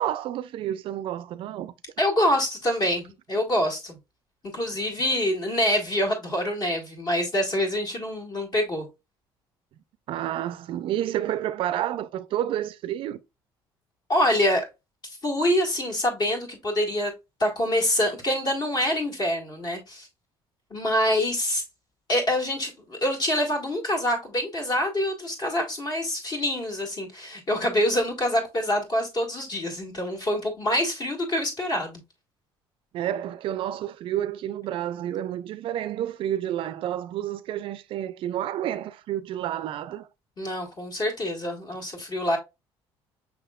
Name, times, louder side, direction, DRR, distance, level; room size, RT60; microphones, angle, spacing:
voice 1, 0.0-1.7 10.1-13.2 32.9-40.1, right 11 dB, 60° right, 0.4 m, -30 dB
voice 2, 2.0-4.0 4.5-8.8 14.1-14.7 15.2-17.1 17.4-20.1 20.7-21.6 22.1-32.0 40.4-42.4, left 1 dB, 45° left, 1.8 m, -25 dB
6.1 x 3.5 x 2.3 m
cardioid pair, 100°, 10 cm